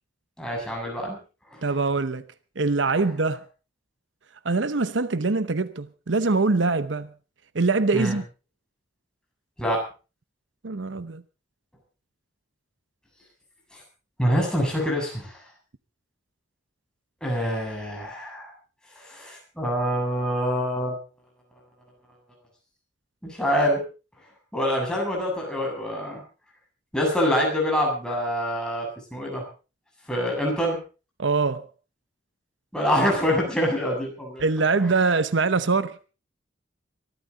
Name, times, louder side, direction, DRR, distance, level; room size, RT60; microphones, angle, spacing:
voice 1, 0.4-1.2 1.5-1.7 7.9-8.2 9.6-9.8 13.7-13.8 14.2-15.4 17.2-18.5 19.0-21.0 23.2-23.8 24.5-26.2 26.9-28.9 29.1-29.4 30.1-30.8 32.7-34.5, equal, 5° left, 7.3 m, -25 dB
voice 2, 1.6-2.2 2.6-3.4 4.4-7.1 7.5-8.2 10.6-11.2 31.2-31.7 34.4-36.0, right 3 dB, 75° right, 0.8 m, -23 dB
23.5 x 13.0 x 4.0 m
head